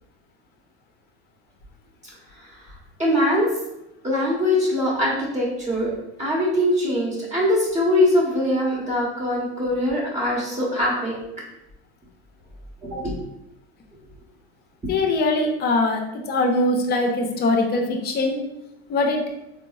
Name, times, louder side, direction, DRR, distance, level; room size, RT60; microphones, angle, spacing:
voice 1, 3.0-3.5 4.0-5.9 6.2-11.2 12.8-13.1, left 1 dB, 20° right, -5 dB, 1.0 m, -22 dB
voice 2, 14.9-16.0 16.3-18.4 18.9-19.2, left 2 dB, 30° left, 3 dB, 0.6 m, -21 dB
3.6 x 2.0 x 2.4 m, 0.88 s
hypercardioid pair, 90°, 33 cm